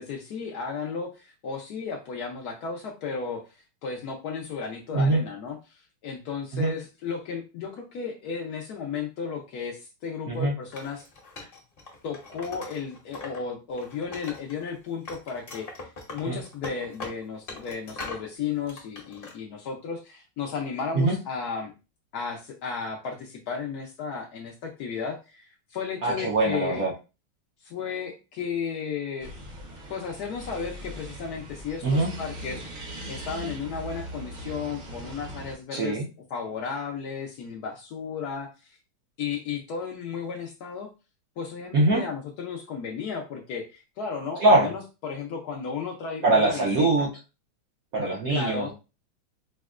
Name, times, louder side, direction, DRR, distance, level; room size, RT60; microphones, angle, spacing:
voice 1, 0.0-11.0 12.0-21.7 22.1-25.4 25.7-26.8 27.6-29.3 29.9-36.0 36.3-38.5 39.2-40.9 41.4-47.1 48.3-48.7, left 6 dB, 80° left, 0 dB, 0.8 m, -34 dB
Wood, 10.7-13.4 13.7-14.7 15.0-18.3 18.7-19.3, left 3 dB, 45° left, 0.7 m, -41 dB
voice 2, 26.0-26.9 31.8-32.1 35.7-36.1 41.7-42.0 44.4-44.7 46.2-47.1 47.9-48.7, right 2 dB, 80° right, -3 dB, 0.7 m, -22 dB
sound 1, 29.2-35.6, equal, 50° right, 0.5 m, -40 dB
5.0 x 2.1 x 2.4 m, 0.30 s
omnidirectional pair, 2.4 m